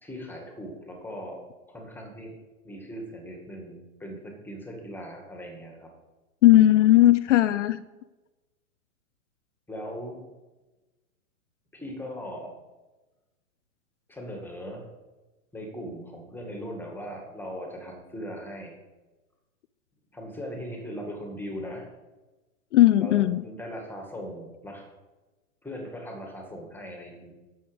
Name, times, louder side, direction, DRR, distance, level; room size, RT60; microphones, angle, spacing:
voice 1, 0.0-1.4 1.7-2.3 2.6-5.9 9.7-10.2 11.7-12.5 14.1-14.8 15.5-18.7 20.1-21.9 23.0-24.9 25.6-27.3, equal, 5° left, 1 dB, 2.0 m, -39 dB
voice 2, 6.4-7.8 22.7-23.4, left 14 dB, 60° left, 14 dB, 0.5 m, -17 dB
12.0 x 7.8 x 5.2 m, 1.1 s
hypercardioid pair, 130°, 43 cm